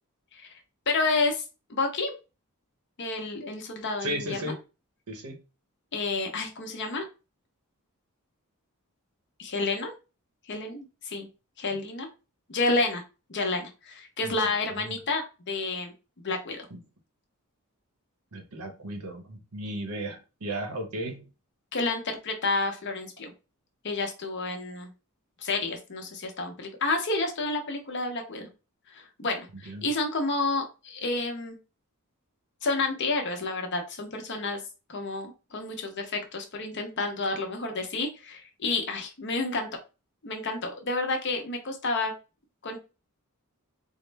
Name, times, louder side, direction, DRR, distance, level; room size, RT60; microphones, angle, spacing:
voice 1, 0.9-1.4 1.7-2.1 3.0-4.5 5.9-7.0 9.4-9.9 10.5-11.3 11.6-12.1 12.5-13.0 13.3-16.7 21.7-23.3 23.8-24.9 25.4-28.5 28.9-31.6 32.6-34.6 34.9-39.7 40.2-42.1 42.6-42.8, left 3 dB, 55° left, 3 dB, 0.8 m, -30 dB
voice 2, 4.0-4.6 5.1-5.4 14.2-14.3 14.8-15.0 18.3-21.3 29.7-29.9, right 1 dB, 85° right, 5 dB, 0.9 m, -35 dB
3.6 x 2.1 x 3.3 m, 0.31 s
head